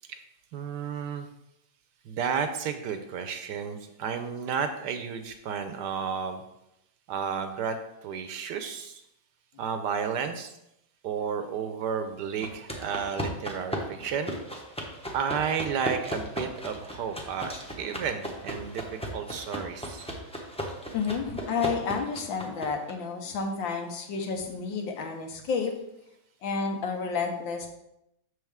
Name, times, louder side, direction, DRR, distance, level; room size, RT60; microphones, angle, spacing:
voice 1, 0.5-1.3 2.0-6.4 7.1-7.8 8.0-9.0 9.6-10.5 11.0-14.3 15.1-20.1, right 6 dB, 70° right, 8 dB, 1.1 m, -32 dB
sound 1, 12.4-22.9, equal, 10° left, 0.3 m, -37 dB
voice 2, 20.9-25.7 26.4-27.7, left 5 dB, 80° left, 3 dB, 1.8 m, -30 dB
6.5 x 6.4 x 3.5 m, 0.82 s
omnidirectional pair, 2.1 m